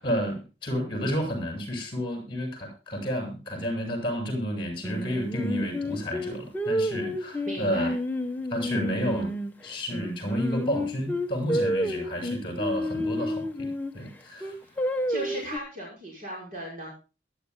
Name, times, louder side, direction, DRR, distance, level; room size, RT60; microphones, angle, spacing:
voice 1, 0.0-7.9 8.5-9.4 9.6-14.6, equal, 25° left, 4 dB, 7.1 m, -31 dB
Singing, 4.8-9.5 9.9-13.9 14.4-15.6, equal, 10° left, 1.1 m, -30 dB
voice 2, 7.5-7.9 14.6-14.8 15.1-16.9, right 1 dB, 45° right, -3 dB, 5.9 m, -37 dB
22.0 x 13.0 x 2.3 m, 0.32 s
head